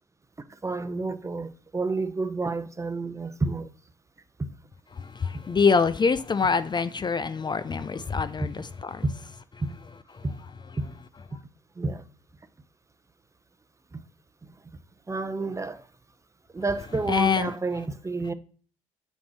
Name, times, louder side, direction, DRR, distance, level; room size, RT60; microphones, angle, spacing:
voice 1, 0.5-3.7 4.4-4.5 8.4-8.5 9.0-9.1 9.6-9.8 10.2-10.3 10.8-10.9 11.8-12.1 13.9-14.0 14.4-14.6 15.1-15.9 16.5-18.3, right 3 dB, 20° right, 0.8 m, -30 dB
voice 2, 4.9-9.0 10.1-10.2 17.1-17.5, left 5 dB, 30° left, 0.5 m, -25 dB
6.0 x 5.6 x 6.3 m
hypercardioid pair, 50°, 15 cm